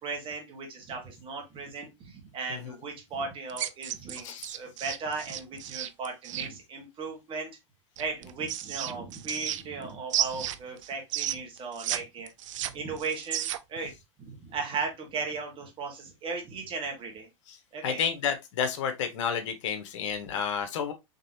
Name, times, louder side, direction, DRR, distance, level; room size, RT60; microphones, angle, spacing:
voice 1, 0.0-7.5 8.0-12.3 12.7-13.9 14.2-17.3 17.7-18.0, right 4 dB, 35° right, 1.7 m, -36 dB
sound 1, 3.5-6.5 8.0-9.8 10.1-12.0 12.3-13.8, right 12 dB, 85° right, 0.4 m, -33 dB
voice 2, 4.2-4.5 17.8-20.9, left 7 dB, 75° left, 1.0 m, -30 dB
3.9 x 3.4 x 2.8 m
hypercardioid pair, 115°, 16 cm